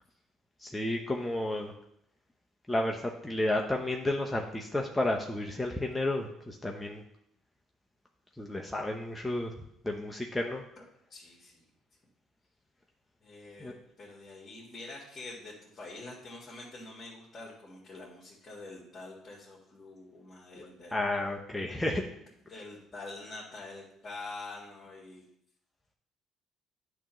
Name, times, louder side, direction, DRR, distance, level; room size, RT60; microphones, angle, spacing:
voice 1, 0.6-1.7 2.7-7.0 8.4-9.5 9.8-10.6 13.6-13.7 20.6-20.7 20.9-22.0, left 1 dB, 5° left, 0 dB, 0.7 m, -32 dB
voice 2, 10.8-11.7 13.2-21.0 22.5-25.3, left 2 dB, 35° left, -5 dB, 1.9 m, -46 dB
8.8 x 3.0 x 5.7 m, 0.76 s
supercardioid pair, 90°, 0 cm